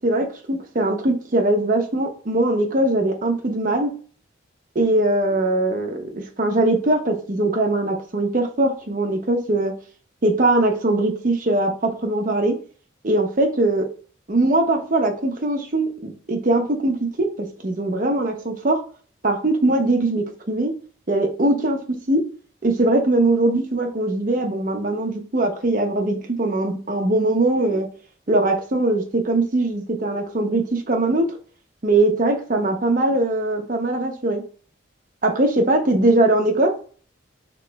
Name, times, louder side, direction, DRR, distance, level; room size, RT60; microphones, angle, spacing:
voice 1, 0.0-3.9 4.7-9.7 10.2-12.6 13.0-13.9 14.3-18.8 19.2-20.7 21.1-22.2 22.6-27.9 28.3-31.3 31.8-34.4 35.2-36.7, right 2 dB, 40° right, 3 dB, 0.7 m, -21 dB
3.2 x 2.9 x 3.3 m, 0.42 s
head